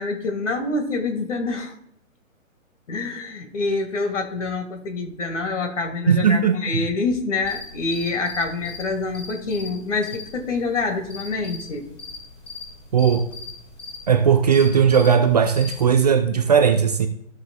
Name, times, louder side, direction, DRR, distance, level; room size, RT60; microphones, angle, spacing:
voice 1, 0.0-1.7 2.9-11.9, left 3 dB, 60° left, 2.0 m, -26 dB
voice 2, 6.1-6.8 12.9-13.2 14.1-17.1, right 7 dB, 30° right, 0.5 m, -17 dB
sound 1, 7.4-16.0, left 3 dB, 15° left, 2.6 m, -40 dB
15.0 x 6.3 x 2.3 m
figure-of-eight pair, 140°, 41 cm